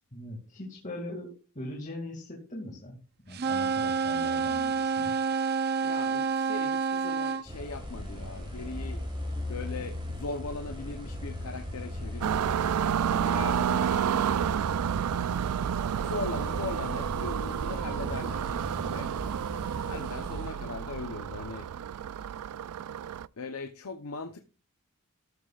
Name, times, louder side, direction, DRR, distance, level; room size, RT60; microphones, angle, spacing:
voice 1, 0.1-3.0 3.3-5.1, left 1 dB, 35° left, 2.3 m, -40 dB
sound 1, 3.3-7.4, right 5 dB, 45° right, 0.6 m, -28 dB
voice 2, 5.8-9.0 9.5-12.5 13.0-14.3 16.0-18.6 18.8-19.1 19.8-21.7 23.4-24.4, left 3 dB, 75° left, 0.8 m, -39 dB
sound 2, 7.5-20.5, left 1 dB, 20° right, 4.7 m, -38 dB
sound 3, 12.2-23.3, right 8 dB, 90° right, 0.4 m, -30 dB
13.0 x 11.5 x 2.4 m
head